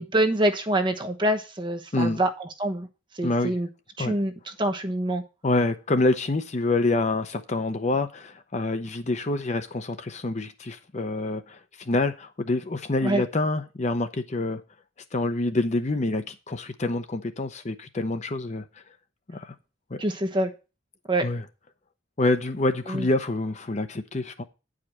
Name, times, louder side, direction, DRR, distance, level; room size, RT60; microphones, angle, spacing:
voice 1, 0.0-2.3 2.6-2.9 3.1-3.7 4.0-4.3 4.6-5.2 13.0-13.2 20.0-20.5 21.1-21.2 22.9-23.1, right 1 dB, 25° right, 1.0 m, -25 dB
voice 2, 3.2-3.5 4.0-4.1 5.4-14.6 15.1-18.6 19.3-19.5 19.9-20.0 21.2-21.4 22.2-24.4, left 2 dB, 35° left, 0.6 m, -26 dB
9.4 x 5.0 x 7.3 m
head